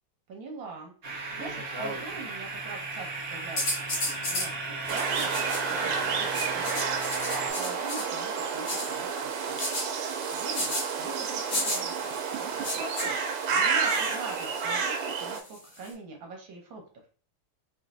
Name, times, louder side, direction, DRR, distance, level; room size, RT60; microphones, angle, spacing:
voice 1, 0.3-3.6 4.0-6.8 7.3-9.6 10.3-11.9 12.4-12.5 12.8-13.2 13.5-16.8, right 4 dB, 65° right, 1 dB, 1.6 m, -42 dB
sound 1, 1.0-7.5, right 3 dB, 50° right, 0.7 m, -35 dB
sound 2, 3.6-4.5 4.9-5.8 6.3-8.1 8.7-8.9 9.6-9.9 10.5-10.8 11.5-11.8 12.6-13.1 13.8-14.7 15.3-15.9, left 1 dB, 65° left, 2.3 m, -33 dB
sound 3, 4.9-15.4, right 5 dB, 85° right, 1.5 m, -30 dB
4.3 x 3.1 x 2.6 m, 0.38 s
omnidirectional pair, 2.4 m